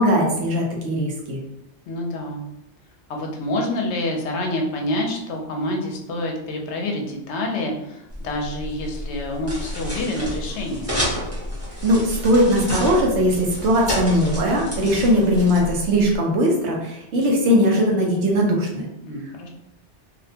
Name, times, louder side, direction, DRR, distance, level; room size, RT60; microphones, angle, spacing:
voice 1, 0.0-1.4 11.8-18.9, equal, 75° right, -1 dB, 1.0 m, -19 dB
voice 2, 1.9-2.5 3.1-11.0 19.0-19.5, left 1 dB, 75° left, 1 dB, 0.9 m, -27 dB
sound 1, 8.1-16.2, equal, 15° right, 0.7 m, -30 dB
2.7 x 2.1 x 2.7 m, 0.82 s
omnidirectional pair, 1.2 m